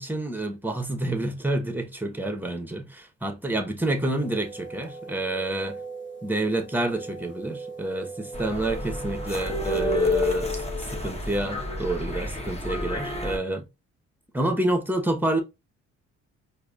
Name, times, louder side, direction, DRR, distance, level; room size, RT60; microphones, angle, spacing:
voice 1, 0.0-5.8 6.2-13.7 14.3-15.4, right 1 dB, 5° right, 0.9 m, -28 dB
sound 1, 3.9-10.1, right 4 dB, 40° left, 1.2 m, -40 dB
sound 2, 8.3-13.4, left 2 dB, 20° left, 1.0 m, -29 dB
4.6 x 2.6 x 2.3 m
cardioid pair, 90°, 30 cm